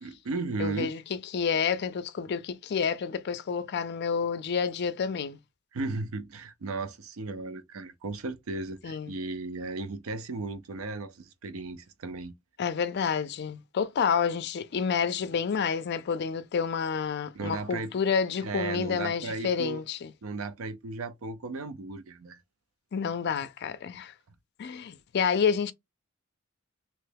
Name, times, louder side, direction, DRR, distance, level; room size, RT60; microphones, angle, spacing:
voice 1, 0.0-0.9 5.7-12.3 17.3-17.9 18.4-19.8 20.2-22.4, right 3 dB, 75° right, 0.5 m, -35 dB
voice 2, 0.6-1.0 1.3-5.4 8.8-9.1 12.6-20.1 22.9-24.1 24.6-25.7, left 6 dB, 55° left, 0.4 m, -29 dB
3.0 x 2.2 x 3.3 m
head